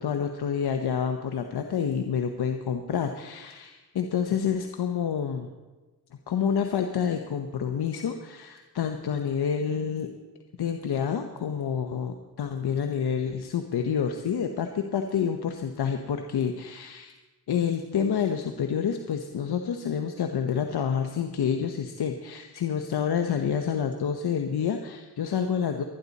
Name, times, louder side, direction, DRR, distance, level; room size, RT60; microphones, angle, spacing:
voice 1, 0.0-5.5 6.3-10.1 10.6-17.1 17.5-25.8, left 7 dB, 70° left, 5 dB, 1.1 m, -28 dB
24.0 x 9.9 x 4.2 m, 1.2 s
cardioid pair, 60°, 40 cm